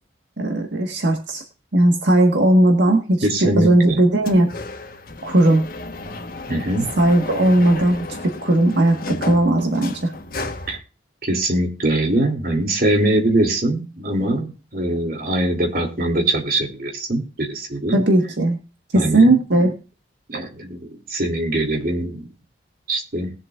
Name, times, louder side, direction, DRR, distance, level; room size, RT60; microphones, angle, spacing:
voice 1, 0.4-1.4 1.7-4.5 5.2-5.6 7.0-10.1 17.9-18.6 18.9-19.7, right 1 dB, 80° right, 3 dB, 1.6 m, -17 dB
voice 2, 3.2-4.0 6.5-6.9 10.7-10.8 11.2-18.0 18.9-19.3 20.3-22.3 22.9-23.3, right 1 dB, 55° right, 2 dB, 3.0 m, -22 dB
sound 1, 4.2-10.8, left 2 dB, 55° left, 1.4 m, -33 dB
20.5 x 7.4 x 2.5 m, 0.34 s
head